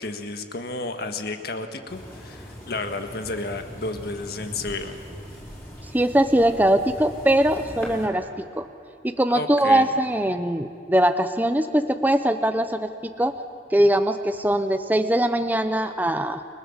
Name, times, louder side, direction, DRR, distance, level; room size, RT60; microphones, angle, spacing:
voice 1, 0.0-5.0 9.3-9.9, left 3 dB, 55° left, 6 dB, 1.8 m, -32 dB
sound 1, 1.9-8.1, equal, 15° left, 5.1 m, -40 dB
voice 2, 5.9-8.7 9.2-12.9 13.2-13.3 13.7-16.4, right 1 dB, 10° right, 8 dB, 0.7 m, -21 dB
30.0 x 22.0 x 7.4 m, 2.6 s
head